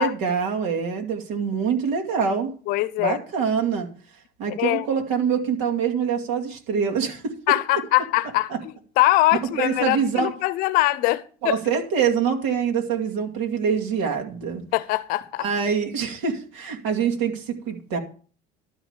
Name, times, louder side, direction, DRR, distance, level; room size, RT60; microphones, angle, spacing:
voice 1, 0.0-2.5 3.0-3.9 4.4-7.4 8.5-8.6 9.6-10.3 11.4-14.6 15.4-18.0, right 6 dB, 80° right, 2.4 m, -25 dB
voice 2, 2.7-3.2 4.6-4.9 7.5-11.6 14.7-15.5, left 18 dB, 55° left, 0.6 m, -22 dB
12.0 x 5.2 x 8.0 m
cardioid pair, 175°, 18 cm